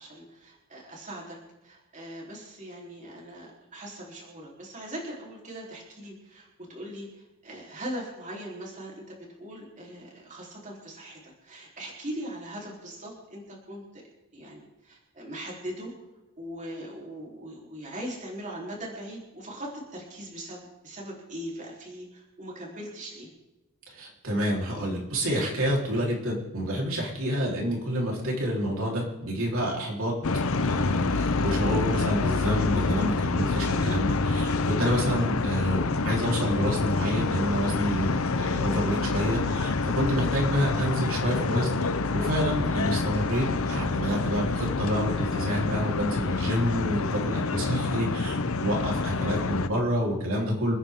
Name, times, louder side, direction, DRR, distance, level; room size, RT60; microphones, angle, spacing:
voice 1, 0.0-1.4 1.6-14.0 14.3-15.9 16.4-23.3, right 1 dB, 35° right, -3 dB, 3.9 m, -40 dB
voice 2, 23.9-30.2 30.6-41.8 42.1-50.8, equal, 60° right, -2 dB, 4.1 m, -28 dB
sound 1, 30.2-49.7, left 3 dB, 65° left, 0.8 m, -27 dB
28.0 x 9.7 x 3.8 m, 1.0 s
head